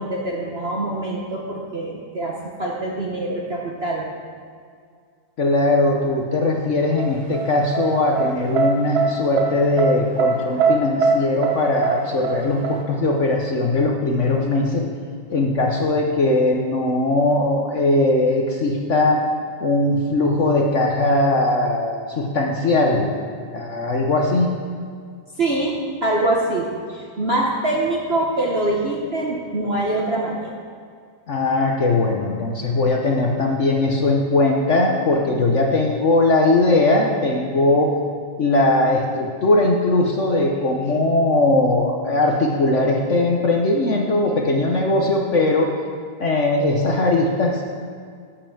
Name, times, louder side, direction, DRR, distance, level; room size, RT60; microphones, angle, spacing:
voice 1, 0.0-4.0 25.4-25.7 26.0-30.5, right 2 dB, 40° right, -3 dB, 1.0 m, -24 dB
voice 2, 5.4-14.9 15.3-19.2 19.6-23.1 23.5-24.5 31.3-37.9 38.4-45.7 46.2-47.6, left 2 dB, 50° left, 0 dB, 1.0 m, -19 dB
sound 1, 7.0-12.8, right 4 dB, 80° right, 1.8 m, -22 dB
11.5 x 5.7 x 7.1 m, 2.1 s
omnidirectional pair, 2.2 m